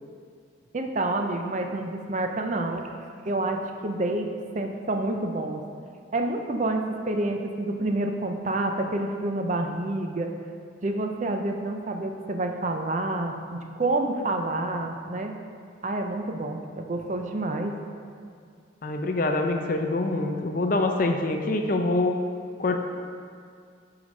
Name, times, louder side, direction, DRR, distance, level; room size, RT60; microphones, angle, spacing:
voice 1, 0.7-2.8 3.3-4.3 4.5-5.6 6.1-10.3 10.8-15.3 15.8-17.7, right 2 dB, 40° right, 4 dB, 0.5 m, -28 dB
voice 2, 18.8-22.2 22.6-22.8, left 2 dB, 45° left, 4 dB, 0.5 m, -25 dB
7.1 x 4.9 x 5.2 m, 2.2 s
head